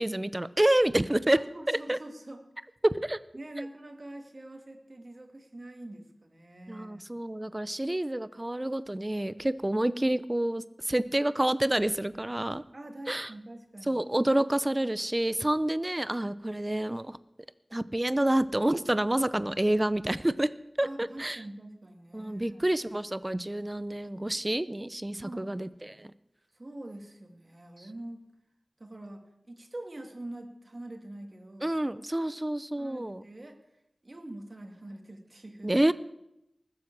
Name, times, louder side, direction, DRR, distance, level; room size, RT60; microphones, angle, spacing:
voice 1, 0.0-1.4 1.7-2.0 2.8-3.2 6.7-12.6 13.1-13.3 13.9-17.2 17.7-21.4 22.1-26.1 31.6-33.2 35.6-35.9, right 1 dB, 20° right, 16 dB, 0.6 m, -28 dB
voice 2, 1.3-2.4 3.3-7.1 12.7-14.0 20.8-22.6 25.2-25.5 26.5-28.2 28.8-31.8 32.1-32.4 32.7-33.6 34.0-35.8, right 1 dB, 45° right, 4 dB, 2.3 m, -44 dB
20.0 x 7.8 x 7.4 m, 0.83 s
wide cardioid pair, 60°, 0 cm